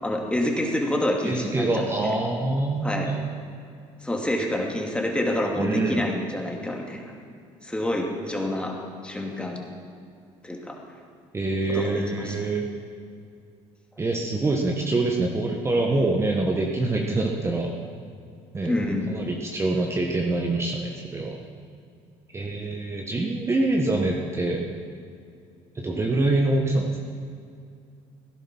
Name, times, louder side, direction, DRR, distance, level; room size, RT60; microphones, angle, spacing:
voice 1, 0.0-2.1 2.8-3.1 4.0-7.1 7.6-9.7 10.4-10.8 11.7-12.4 18.6-19.1, left 1 dB, 10° left, 0 dB, 2.5 m, -28 dB
voice 2, 1.2-3.2 5.6-6.0 11.3-12.7 14.0-17.7 18.5-18.7 19.1-21.4 22.3-24.6 25.7-27.0, right 2 dB, 20° right, 0 dB, 1.4 m, -25 dB
17.0 x 10.5 x 6.1 m, 2.4 s
cardioid pair, 95°, 12 cm